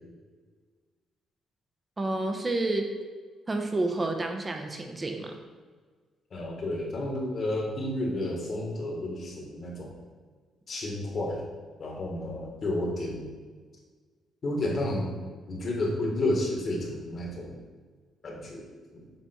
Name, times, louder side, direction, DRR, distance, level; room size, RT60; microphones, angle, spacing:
voice 1, 2.0-2.9 3.5-5.4, right 2 dB, 25° right, 4 dB, 0.9 m, -29 dB
voice 2, 6.3-10.0 10.7-11.4 11.8-13.4 14.4-15.1 15.5-17.6 18.2-19.1, left 1 dB, 50° left, -1 dB, 1.7 m, -31 dB
7.3 x 3.4 x 4.4 m, 1.5 s
cardioid pair, 90°, 0 cm